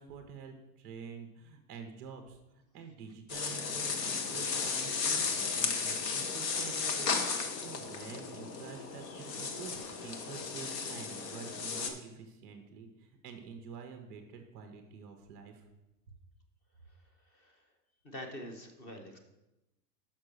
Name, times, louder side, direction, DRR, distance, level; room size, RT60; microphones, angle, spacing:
voice 1, 0.0-2.4 2.7-7.2 7.5-15.7, right 6 dB, 10° right, 4 dB, 0.4 m, -48 dB
sound 1, 3.3-11.9, left 5 dB, 80° left, 1.4 m, -34 dB
voice 2, 17.3-17.7 18.0-19.2, equal, 20° left, 4 dB, 0.7 m, -45 dB
6.2 x 5.9 x 6.6 m, 0.95 s
supercardioid pair, 170°, 49 cm